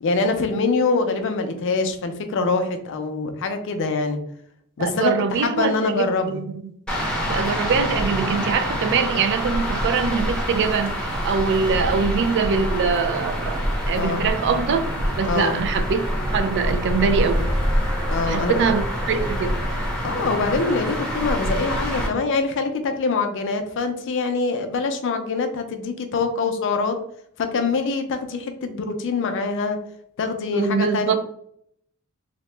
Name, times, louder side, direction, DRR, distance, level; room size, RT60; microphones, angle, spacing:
voice 1, 0.0-4.2 4.8-6.4 13.9-14.3 15.3-15.6 18.1-18.5 20.0-27.0 27.4-29.8 30.2-31.2, left 4 dB, 55° left, 7 dB, 0.4 m, -24 dB
voice 2, 4.8-6.7 7.3-14.8 15.2-16.0 16.3-17.5 18.3-19.6 30.5-31.2, right 5 dB, 55° right, 9 dB, 0.3 m, -23 dB
sound 1, 6.9-22.1, equal, 5° left, 0.6 m, -26 dB
Wind instrument woodwind instrument, 16.9-22.0, left 2 dB, 80° right, 1.2 m, -42 dB
2.8 x 2.1 x 3.1 m, 0.68 s
head